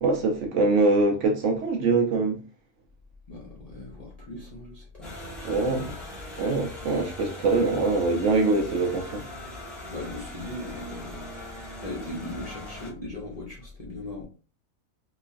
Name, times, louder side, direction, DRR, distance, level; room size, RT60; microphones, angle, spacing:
voice 1, 0.0-2.4 5.4-5.8 6.4-9.2, right 3 dB, 65° right, 0.9 m, -23 dB
voice 2, 3.3-5.9 9.9-11.3 11.8-14.2, left 2 dB, 35° left, 0.6 m, -39 dB
sound 1, 5.0-12.9, left 1 dB, ahead, 0.9 m, -40 dB
3.0 x 2.3 x 2.4 m
omnidirectional pair, 1.5 m